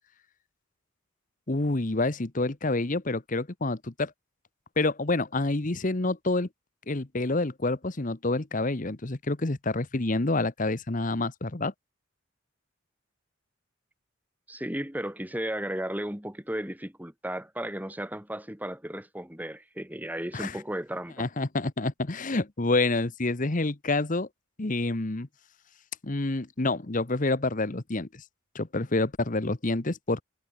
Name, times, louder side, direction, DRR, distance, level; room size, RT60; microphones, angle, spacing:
voice 1, 1.5-4.1 4.8-6.5 6.9-11.7 20.3-20.6 21.2-24.3 24.6-25.3 26.0-28.2 28.5-30.2, left 2 dB, 40° left, 1.1 m, -28 dB
voice 2, 14.5-21.3, right 1 dB, 10° right, 2.1 m, -34 dB
head